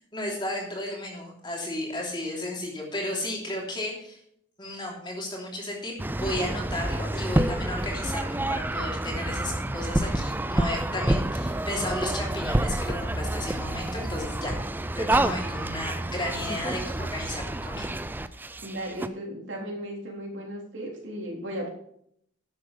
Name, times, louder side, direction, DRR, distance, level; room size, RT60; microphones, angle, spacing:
voice 1, 0.1-4.2 4.6-14.5 14.9-17.9, left 1 dB, 25° left, -1 dB, 3.0 m, -33 dB
sound 1, 6.0-19.1, right 1 dB, 10° right, 0.4 m, -28 dB
voice 2, 18.6-21.7, equal, 75° right, -1 dB, 3.7 m, -35 dB
11.5 x 7.6 x 5.4 m, 0.68 s
head